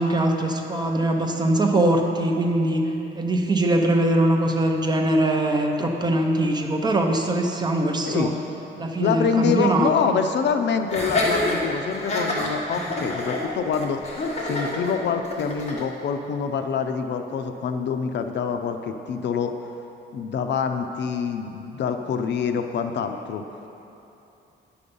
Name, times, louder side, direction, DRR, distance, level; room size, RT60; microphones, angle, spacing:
voice 1, 0.0-8.3 8.8-9.9, right 1 dB, 20° right, 2 dB, 0.7 m, -22 dB
voice 2, 9.0-14.0 14.4-19.5 20.1-23.4, left 6 dB, 65° left, 6 dB, 0.6 m, -26 dB
Laughter, 10.9-15.9, left 1 dB, 35° left, 1.3 m, -27 dB
10.0 x 6.8 x 5.4 m, 2.9 s
wide cardioid pair, 165°, 20 cm